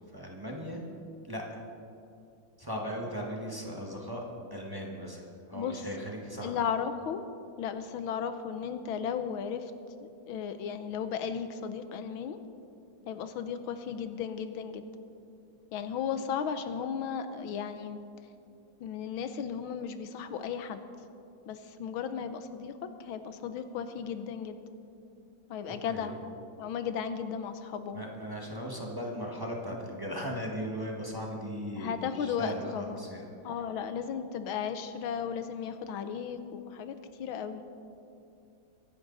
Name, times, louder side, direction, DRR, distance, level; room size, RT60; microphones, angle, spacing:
voice 1, 0.1-0.8 1.3-1.6 2.6-4.2 4.5-6.5 25.6-26.2 27.9-33.3, equal, 10° right, -1 dB, 1.5 m, -38 dB
voice 2, 5.5-6.1 6.4-7.2 7.6-9.7 10.0-12.4 13.1-14.8 15.7-18.0 18.8-20.8 21.5-24.6 25.5-26.2 26.6-28.0 31.8-33.0 33.4-37.6, left 7 dB, 90° left, 10 dB, 1.7 m, -35 dB
23.5 x 11.0 x 4.0 m, 2.6 s
omnidirectional pair, 2.2 m